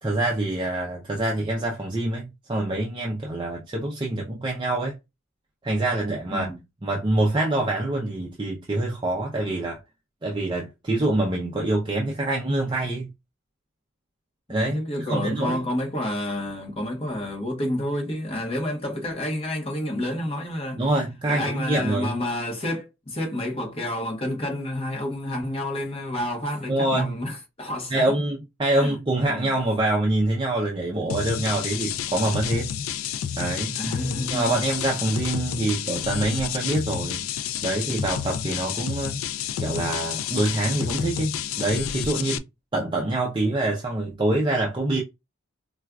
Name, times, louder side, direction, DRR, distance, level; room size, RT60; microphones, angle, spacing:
voice 1, 0.0-5.0 5.6-6.5 6.8-9.8 10.2-13.1 14.5-15.6 20.8-22.1 26.7-27.2 27.9-32.7 33.4-33.8 34.3-37.3 37.6-39.1 39.6-42.4 42.7-45.0, right 2 dB, 20° right, 0.5 m, -25 dB
voice 2, 14.5-20.8 21.3-28.2 28.7-29.0 29.3-29.5 33.7-34.6, left 1 dB, 25° left, 1.1 m, -29 dB
sound 1, 31.1-42.4, left 9 dB, 70° left, 0.3 m, -30 dB
4.4 x 2.4 x 2.3 m
head